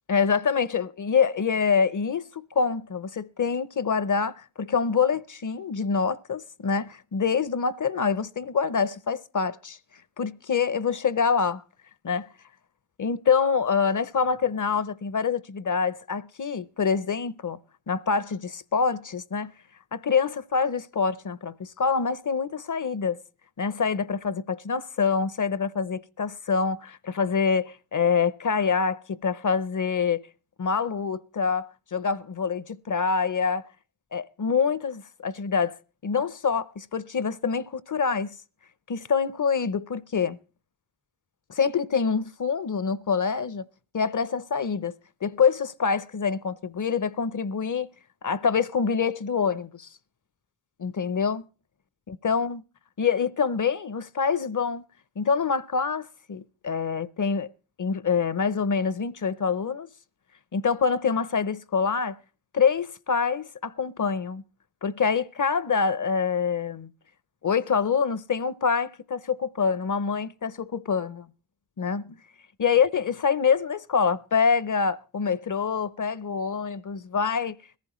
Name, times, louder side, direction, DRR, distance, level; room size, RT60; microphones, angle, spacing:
voice 1, 0.1-9.8 10.2-11.6 12.0-12.3 13.0-17.6 17.9-19.5 19.9-23.2 23.6-30.2 30.6-33.7 34.1-38.4 38.9-40.4 41.5-43.6 43.9-44.9 45.2-47.9 48.2-49.9 50.8-51.5 52.1-52.6 53.0-54.8 55.2-57.5 57.8-59.9 60.5-62.2 62.5-64.4 64.8-66.9 67.4-71.3 71.8-72.0 72.6-77.6, left 6 dB, 40° left, 0.6 m, -26 dB
21.0 x 14.5 x 3.0 m
cardioid pair, 40°, 49 cm